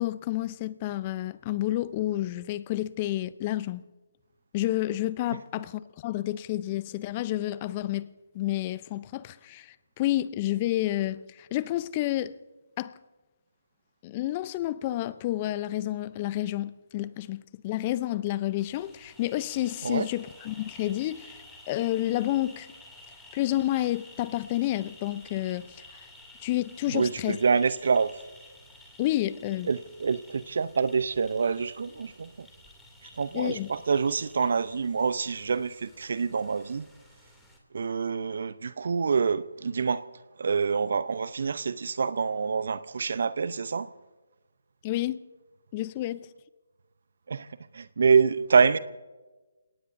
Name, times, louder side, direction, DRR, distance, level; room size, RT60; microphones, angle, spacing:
voice 1, 0.0-3.8 4.5-12.4 12.8-12.9 14.0-21.4 21.7-22.7 23.3-26.0 26.4-27.4 29.0-29.7 33.3-33.7 44.8-45.2 45.7-46.3, left 15 dB, 25° left, 0.6 m, -30 dB
sound 1, 18.6-37.6, left 1 dB, 5° left, 2.7 m, -52 dB
voice 2, 26.9-28.2 29.7-32.5 33.2-36.9 37.7-40.0 40.4-43.9 47.3-47.5 47.7-48.8, right 5 dB, 60° right, 0.7 m, -26 dB
28.5 x 18.0 x 2.7 m
figure-of-eight pair, 150°, 0 cm